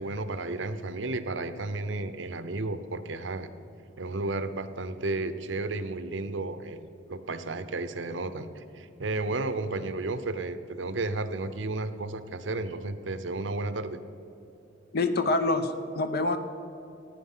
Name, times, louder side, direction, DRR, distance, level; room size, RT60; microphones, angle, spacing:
voice 1, 0.0-3.5 4.0-14.0, right 2 dB, 75° right, 11 dB, 0.8 m, -33 dB
voice 2, 14.9-16.4, left 2 dB, 55° left, 8 dB, 0.8 m, -26 dB
15.5 x 9.7 x 5.6 m, 2.9 s
head